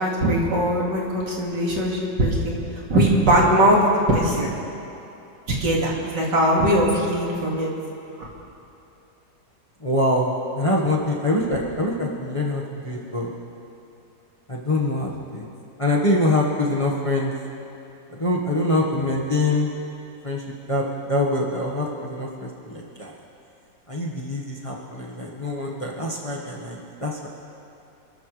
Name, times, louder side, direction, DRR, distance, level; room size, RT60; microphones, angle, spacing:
voice 1, 0.0-2.6 2.9-3.8 4.1-4.5 5.6-7.7 8.2-8.3, right 1 dB, 70° right, -3 dB, 3.0 m, -20 dB
voice 2, 9.8-10.3 10.6-13.3 14.5-15.4 15.8-17.3 18.2-19.7 20.2-20.4 20.7-23.1 23.9-27.3, left 1 dB, 20° left, -3 dB, 1.4 m, -24 dB
28.0 x 13.5 x 3.4 m, 2.8 s
omnidirectional pair, 2.0 m